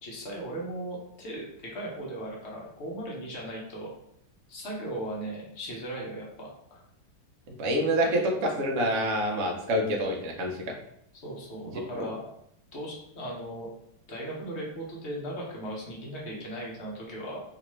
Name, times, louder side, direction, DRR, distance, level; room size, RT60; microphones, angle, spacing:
voice 1, 0.0-3.9 4.5-6.8 11.2-12.2 12.7-13.7 14.1-17.4, right 1 dB, 50° left, -3 dB, 0.9 m, -37 dB
voice 2, 7.6-10.7 11.7-11.8, equal, 80° right, 1 dB, 0.6 m, -27 dB
3.9 x 2.5 x 3.0 m, 0.73 s
omnidirectional pair, 2.1 m